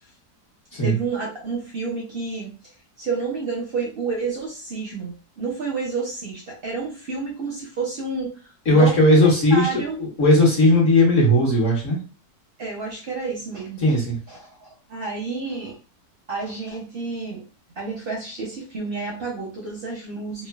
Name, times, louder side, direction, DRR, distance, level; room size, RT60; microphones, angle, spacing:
voice 1, 0.8-2.5 3.0-8.3 8.7-10.0 12.6-14.0 14.3-15.7 16.3-17.4 17.8-20.5, right 4 dB, 55° right, -2 dB, 0.6 m, -30 dB
voice 2, 8.7-9.7 10.0-12.0 13.8-14.2, left 1 dB, 55° left, -3 dB, 1.3 m, -17 dB
3.2 x 2.1 x 2.2 m, 0.36 s
omnidirectional pair, 1.6 m